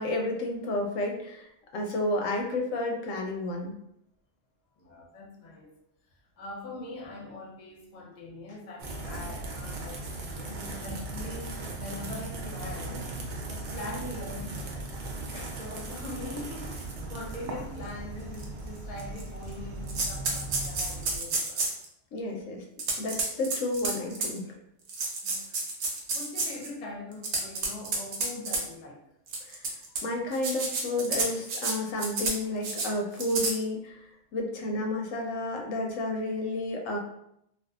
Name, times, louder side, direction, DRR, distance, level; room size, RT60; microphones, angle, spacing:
voice 1, 0.0-3.7 15.3-15.5 22.1-22.6 23.0-24.5 29.5-29.7 30.0-37.0, left 1 dB, 90° left, 1 dB, 1.0 m, -31 dB
voice 2, 4.8-5.7 6.4-13.2 13.4-15.2 15.6-21.7 25.2-25.7 26.1-29.0, left 2 dB, 45° left, -2 dB, 0.6 m, -42 dB
sound 1, 8.8-21.2, right 2 dB, 65° right, 0.4 m, -38 dB
sound 2, 16.0-16.1 16.8-16.9 17.3-17.4 18.3-18.4 19.0-19.5 19.9-21.8 22.8-24.4 24.9-26.7 27.1-28.6 29.3-30.0 30.3-31.7 32.0-32.4 32.6-32.9 33.2-33.5, right 3 dB, 85° right, 1.0 m, -30 dB
2.6 x 2.3 x 2.3 m, 0.76 s
omnidirectional pair, 1.3 m